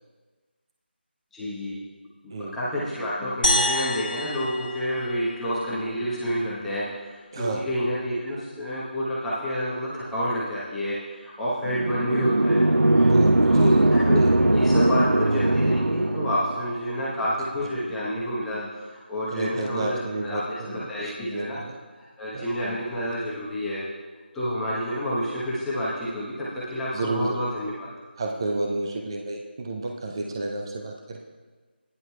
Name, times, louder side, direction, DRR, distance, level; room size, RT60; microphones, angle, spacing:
voice 1, 1.3-1.8 2.4-13.1 13.4-21.6 22.0-23.8 24.3-27.9, equal, 5° left, -9 dB, 0.9 m, -29 dB
sound 1, 3.4-5.9, left 1 dB, 50° left, 1.5 m, -27 dB
voice 2, 7.3-7.6 13.0-13.8 14.2-14.3 19.3-21.7 22.3-22.5 26.9-27.4 28.2-31.2, right 2 dB, 25° right, 2 dB, 0.5 m, -31 dB
sound 2, 11.6-16.6, right 1 dB, 90° right, 0.5 m, -20 dB
16.5 x 10.0 x 2.2 m, 1.4 s
figure-of-eight pair, 165°, 6 cm